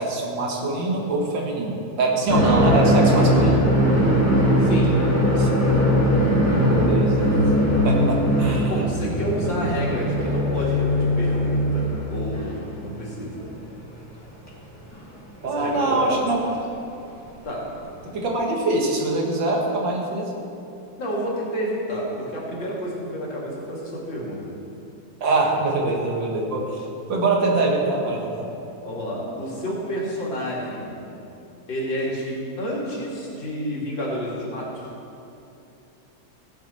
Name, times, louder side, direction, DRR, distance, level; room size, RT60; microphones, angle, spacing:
voice 1, 0.0-3.6 5.4-5.5 6.7-7.3 7.8-8.8 9.4-9.7 15.4-16.4 18.1-20.3 25.2-28.5, right 2 dB, 75° right, -1 dB, 2.2 m, -24 dB
sound 1, 2.3-13.3 13.6-13.7 14.9-15.0 16.5-16.6 18.1-18.2, equal, 10° left, 1.5 m, -20 dB
voice 2, 4.6-4.9 8.7-13.6 15.4-16.2 17.4-17.7 21.0-24.5 28.8-31.1 31.7-34.9, equal, 80° left, -4 dB, 3.0 m, -30 dB
16.0 x 7.9 x 4.3 m, 2.7 s
omnidirectional pair, 2.0 m